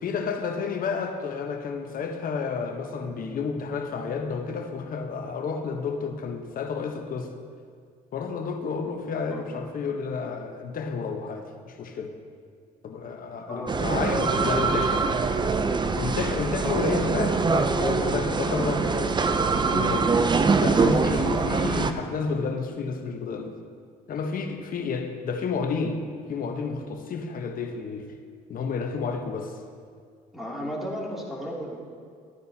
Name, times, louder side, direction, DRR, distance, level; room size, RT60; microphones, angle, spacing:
voice 1, 0.0-7.4 8.1-12.2 12.8-14.9 16.0-17.4 17.8-20.2 20.6-23.5 24.1-26.0 26.3-28.2 28.5-29.6, left 5 dB, 50° left, 5 dB, 1.1 m, -31 dB
sound 1, 13.7-21.9, right 4 dB, 25° right, 0.6 m, -24 dB
voice 2, 14.0-14.9 18.5-18.7 30.3-31.8, equal, ahead, -4 dB, 2.8 m, -34 dB
13.5 x 9.4 x 2.8 m, 2.1 s
supercardioid pair, 70°, 18 cm